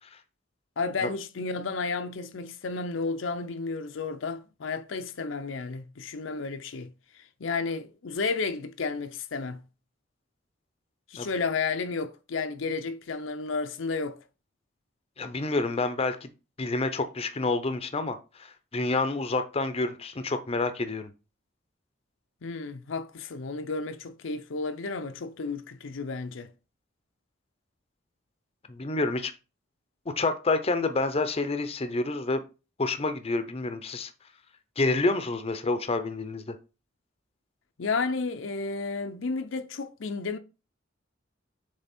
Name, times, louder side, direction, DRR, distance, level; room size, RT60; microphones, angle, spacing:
voice 1, 0.8-9.6 11.1-14.2 22.4-26.5 37.8-40.4, left 4 dB, 75° left, 0.6 m, -32 dB
voice 2, 15.2-16.3 16.6-21.1 28.7-29.3 30.2-32.4 32.8-34.1 34.8-36.5, left 3 dB, 30° left, 0.6 m, -28 dB
6.8 x 3.4 x 4.3 m
head